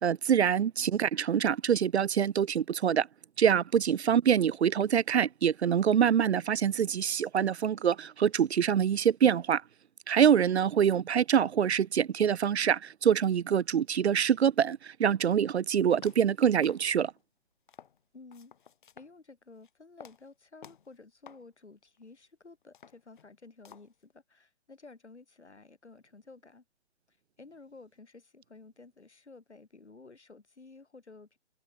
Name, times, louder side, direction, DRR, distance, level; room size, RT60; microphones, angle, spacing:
voice 1, 0.0-3.1 3.4-9.6 10.1-17.1, right 8 dB, 65° right, 0.5 m, -25 dB
sound 1, 15.5-15.6 16.0-16.4 16.6-17.2 17.7-18.0 18.3-19.1 19.5-19.7 20.0-20.3 20.6-21.0 21.3-21.5 22.0-22.1 22.6-23.4 23.6-24.0, left 8 dB, 45° left, 1.2 m, -53 dB
voice 2, 18.1-18.5 19.0-26.6 27.1-31.4, left 3 dB, 75° left, 3.9 m, -53 dB
figure-of-eight pair, 135°, 35 cm